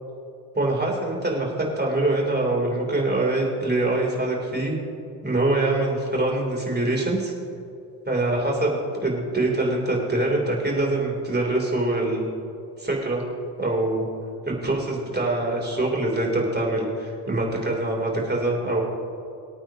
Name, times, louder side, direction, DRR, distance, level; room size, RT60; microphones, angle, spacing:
voice 1, 0.6-4.7 5.2-7.3 8.1-12.3 12.8-13.2 13.6-14.1 14.5-18.8, right 2 dB, 20° right, -2 dB, 3.6 m, -24 dB
24.5 x 8.8 x 3.0 m, 2.6 s
hypercardioid pair, 45°, 47 cm